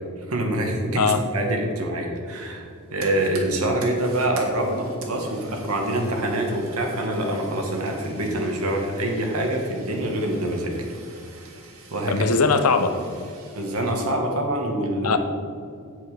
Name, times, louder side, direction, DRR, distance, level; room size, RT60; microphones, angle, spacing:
voice 1, 0.2-10.7 11.3-11.5 11.9-12.3 13.5-15.2, right 1 dB, 85° right, 1 dB, 1.7 m, -25 dB
Fire, 2.6-14.2, right 3 dB, 65° right, 1.6 m, -46 dB
voice 2, 12.1-13.0 15.0-15.2, left 4 dB, 85° left, 9 dB, 0.8 m, -20 dB
8.2 x 8.2 x 5.0 m, 2.4 s
head